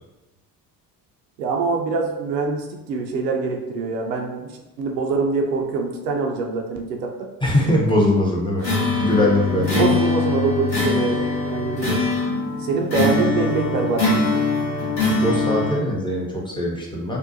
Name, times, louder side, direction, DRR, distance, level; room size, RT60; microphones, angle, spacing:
voice 1, 1.4-4.5 4.8-7.3 9.5-12.1 12.6-14.4, right 4 dB, 75° right, 2 dB, 0.6 m, -24 dB
voice 2, 7.4-8.6 9.0-9.9 15.2-17.2, left 1 dB, 10° left, -4 dB, 0.5 m, -21 dB
sound 1, 8.6-15.8, left 3 dB, 90° left, 0.9 m, -22 dB
2.6 x 2.1 x 2.5 m, 1.0 s
figure-of-eight pair, 55°, 50 cm